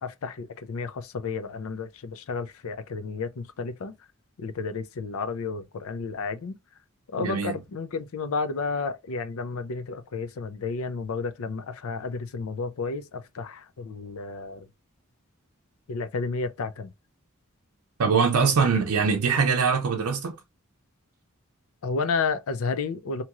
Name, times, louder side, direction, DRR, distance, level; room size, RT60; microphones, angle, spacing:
voice 1, 0.0-3.9 4.4-6.5 7.1-14.7 15.9-16.9 18.4-18.5 21.8-23.2, left 4 dB, 70° left, 0.5 m, -31 dB
voice 2, 7.2-7.6 18.0-20.4, right 5 dB, 85° right, 0.5 m, -23 dB
2.9 x 2.8 x 2.3 m
head